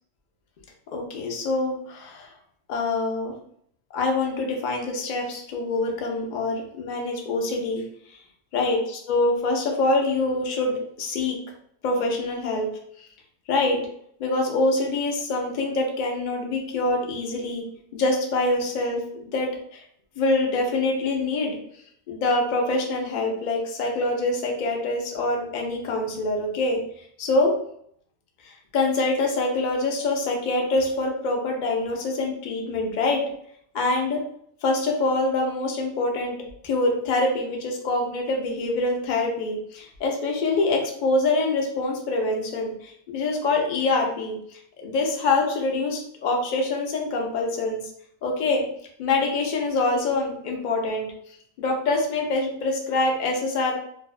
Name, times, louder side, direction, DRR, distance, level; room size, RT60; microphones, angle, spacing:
voice 1, 0.9-2.3 2.7-3.3 3.9-7.8 8.1-8.2 8.5-11.4 11.8-12.7 13.0-13.1 13.5-13.8 14.2-17.6 17.9-19.8 20.2-21.6 22.1-26.8 27.2-27.6 28.4-33.2 33.7-34.2 34.6-36.4 36.6-47.8 48.2-48.6 49.0-51.1 51.6-53.7, left 2 dB, 65° left, 0 dB, 0.4 m, -25 dB
2.6 x 2.1 x 2.3 m, 0.67 s
omnidirectional pair, 1.4 m